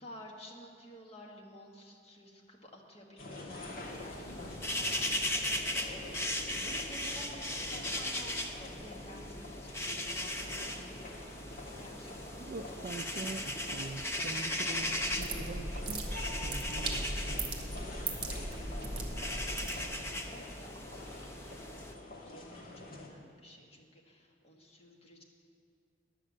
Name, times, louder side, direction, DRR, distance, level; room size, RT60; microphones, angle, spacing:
voice 1, 0.0-5.5 5.9-9.8 10.1-11.2 11.8-13.6 17.8-19.0 19.4-21.8 22.2-25.2, left 1 dB, 35° left, 0 dB, 1.4 m, -52 dB
sound 1, 3.2-23.1, left 2 dB, 55° left, 1.3 m, -46 dB
sound 2, 3.6-21.9, left 1 dB, 15° left, 0.6 m, -38 dB
voice 2, 12.4-16.0 16.4-17.5, right 3 dB, 45° right, 4 dB, 0.3 m, -44 dB
sound 3, 14.8-20.2, right 2 dB, 30° right, 1.2 m, -38 dB
11.0 x 6.6 x 7.5 m, 2.3 s
head